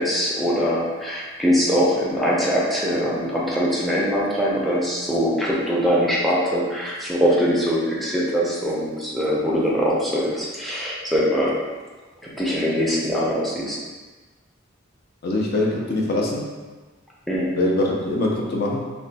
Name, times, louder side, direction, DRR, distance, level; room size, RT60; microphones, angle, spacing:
voice 1, 0.0-11.5 12.2-13.8 17.3-17.6, equal, ahead, -5 dB, 0.5 m, -22 dB
voice 2, 15.2-16.5 17.6-18.9, left 2 dB, 55° left, -1 dB, 0.5 m, -23 dB
3.1 x 2.1 x 4.0 m, 1.3 s
head